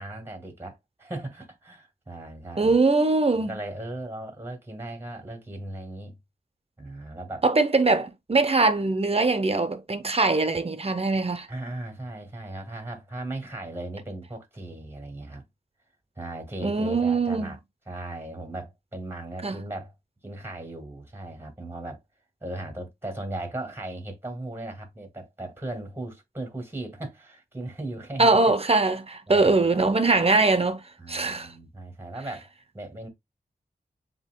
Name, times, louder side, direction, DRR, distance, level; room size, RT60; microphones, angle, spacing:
voice 1, 0.0-2.8 3.4-6.2 6.8-7.4 11.5-15.5 16.2-17.6 17.9-19.9 20.2-22.0 22.4-28.4 29.3-29.9 31.0-33.1, right 2 dB, 15° right, 2.1 m, -37 dB
voice 2, 2.6-3.6 7.4-11.5 16.6-17.6 19.4-19.6 28.2-30.8 31.1-31.5, right 3 dB, 35° right, 0.8 m, -22 dB
7.2 x 2.8 x 2.2 m
cardioid pair, 40°, 17 cm